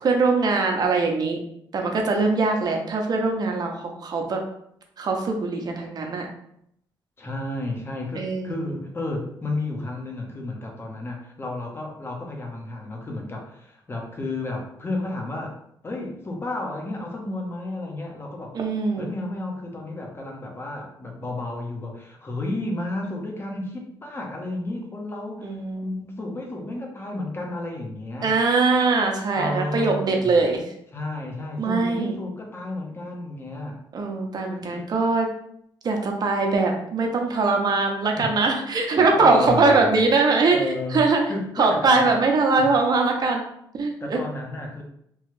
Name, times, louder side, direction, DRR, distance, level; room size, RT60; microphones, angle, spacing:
voice 1, 0.0-1.4 1.7-4.4 5.0-6.3 8.2-8.7 18.5-19.1 25.4-26.1 28.2-30.6 31.6-32.2 33.9-35.3 35.8-41.2 41.6-43.4 43.8-44.2, right 3 dB, 50° right, 2 dB, 0.7 m, -22 dB
voice 2, 7.2-15.6 15.8-18.5 19.0-25.5 25.8-28.4 29.3-30.4 30.9-33.8 34.7-34.9 38.1-38.3 38.9-40.0 40.5-42.1 42.6-42.8 44.0-44.8, left 2 dB, 25° left, 0 dB, 0.8 m, -32 dB
3.0 x 2.3 x 3.1 m, 0.72 s
cardioid pair, 90°, 9 cm